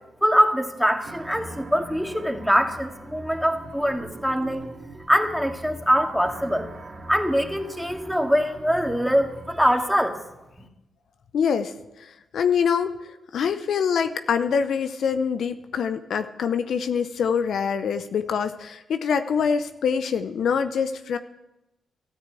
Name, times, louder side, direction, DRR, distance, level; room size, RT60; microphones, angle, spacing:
voice 1, 0.2-4.7 5.1-6.7 7.1-10.2, equal, ahead, 4 dB, 2.3 m, -23 dB
sound 1, 1.0-9.6, right 2 dB, 50° right, 2.1 m, -42 dB
voice 2, 11.3-13.0 13.3-21.2, left 6 dB, 70° left, 9 dB, 0.7 m, -25 dB
13.5 x 9.7 x 8.3 m, 0.96 s
hypercardioid pair, 45°, 0 cm